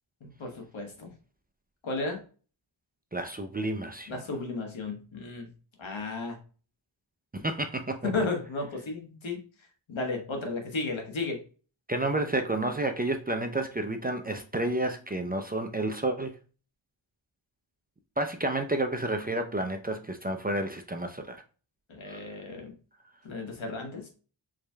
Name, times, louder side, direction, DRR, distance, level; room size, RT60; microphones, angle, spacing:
voice 1, 0.2-1.1 1.8-2.2 4.1-5.5 5.8-6.4 8.0-9.4 9.9-11.4 21.9-22.7 23.2-24.1, left 3 dB, 70° left, 1.4 m, -34 dB
voice 2, 3.1-4.2 7.3-8.1 11.9-16.4 18.2-21.4 22.1-22.2, right 2 dB, 20° right, 0.5 m, -30 dB
4.9 x 3.2 x 2.2 m
cardioid pair, 60°, 48 cm